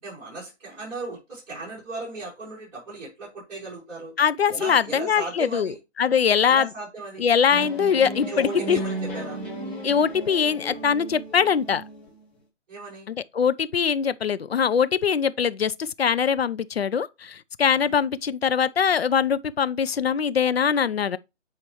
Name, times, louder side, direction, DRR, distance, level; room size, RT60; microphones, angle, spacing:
voice 1, 0.0-4.1 4.5-5.8 6.5-7.3 8.2-9.4 12.7-13.1 17.8-17.9, right 3 dB, 25° right, 4.6 m, -37 dB
voice 2, 4.2-5.7 6.0-6.7 7.2-8.8 9.8-11.8 13.1-21.2, left 7 dB, 55° left, 0.6 m, -22 dB
sound 1, 7.5-12.2, right 1 dB, 5° left, 1.2 m, -34 dB
8.4 x 4.4 x 3.0 m
figure-of-eight pair, 140°, 36 cm